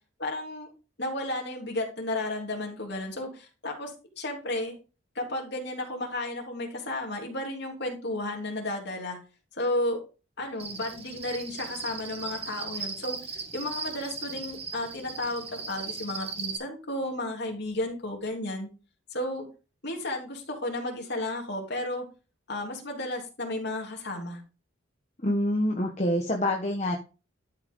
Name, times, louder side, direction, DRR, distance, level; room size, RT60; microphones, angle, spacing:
voice 1, 0.2-0.7 1.0-4.8 5.1-9.2 9.5-10.0 10.4-18.7 19.1-19.5 19.8-22.0 22.5-24.4, left 1 dB, 50° left, 0 dB, 3.2 m, -33 dB
Cricket, 10.6-16.6, right 5 dB, 30° right, 1.4 m, -38 dB
voice 2, 25.2-27.0, left 1 dB, 35° left, 1 dB, 1.2 m, -26 dB
12.0 x 5.8 x 3.9 m, 0.33 s
head